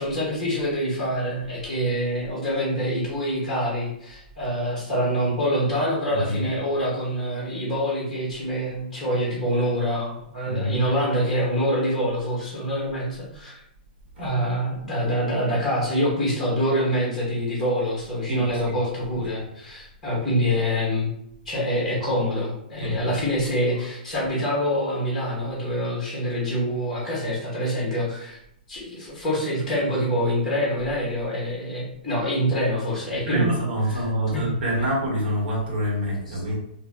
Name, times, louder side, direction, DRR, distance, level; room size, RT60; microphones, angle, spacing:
voice 1, 0.0-13.5 14.2-21.1 21.4-28.4 28.7-33.6 33.9-34.0 34.3-34.5 36.3-36.4, equal, ahead, -5 dB, 0.9 m, -25 dB
voice 2, 6.1-6.4 10.4-10.8 14.2-14.3 18.3-18.8 19.1-19.2 22.8-23.2 24.2-24.3 33.1-36.6, equal, 75° right, -3 dB, 1.5 m, -27 dB
2.7 x 2.6 x 3.6 m, 0.73 s
hypercardioid pair, 180°, 5 cm